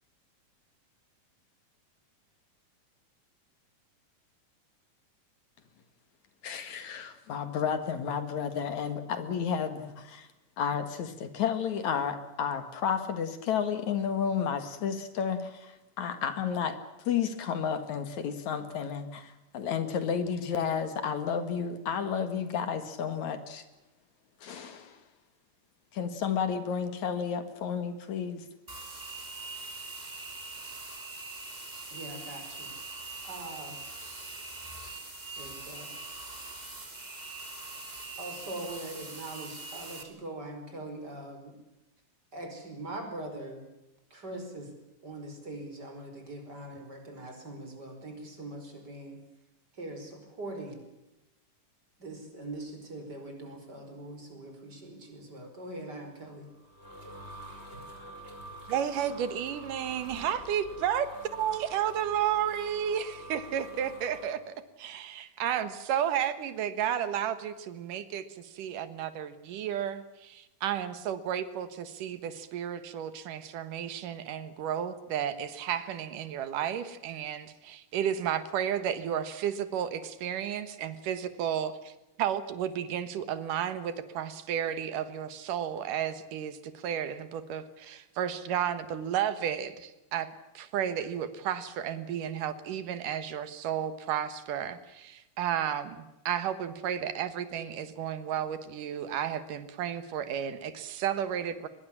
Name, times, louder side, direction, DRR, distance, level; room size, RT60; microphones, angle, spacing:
voice 1, 6.4-10.3 10.6-16.8 17.1-23.6 24.4-25.0 25.9-28.4, left 7 dB, 65° left, 10 dB, 3.0 m, -32 dB
sound 1, 28.7-40.0, right 3 dB, 15° right, 2.6 m, -42 dB
voice 2, 31.9-32.7 33.2-33.8 35.4-35.9 38.2-41.6 42.3-43.6 44.1-44.7 45.0-49.2 49.7-50.8 52.0-56.5, right 1 dB, 30° right, 5 dB, 5.6 m, -42 dB
sound 2, 56.4-64.3, right 1 dB, 20° left, 5.5 m, -47 dB
voice 3, 58.7-81.9 82.2-90.3 90.5-101.7, right 9 dB, 85° right, 12 dB, 3.0 m, -32 dB
23.5 x 21.5 x 7.3 m, 0.97 s
omnidirectional pair, 3.6 m